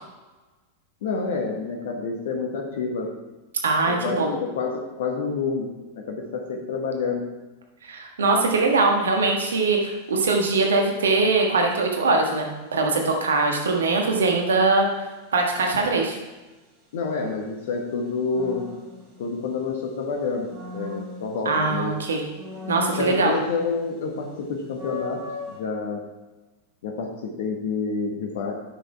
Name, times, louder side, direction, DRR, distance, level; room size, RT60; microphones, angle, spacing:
voice 1, 1.0-3.1 3.8-7.3 15.7-15.8 16.9-18.7 19.2-21.9 22.9-26.0 26.8-28.5, left 4 dB, 55° left, 2 dB, 1.2 m, -28 dB
voice 2, 3.6-4.3 7.9-14.9 15.3-16.2 21.4-22.2 22.7-23.3, right 3 dB, 65° right, 2 dB, 1.5 m, -22 dB
sound 1, 8.7-9.0 18.3-19.8 20.2-21.8 22.3-23.9 24.2-24.3 24.7-25.6, left 3 dB, 35° right, 2.7 m, -37 dB
9.0 x 6.4 x 4.6 m, 1.1 s
figure-of-eight pair, 90°, 0 cm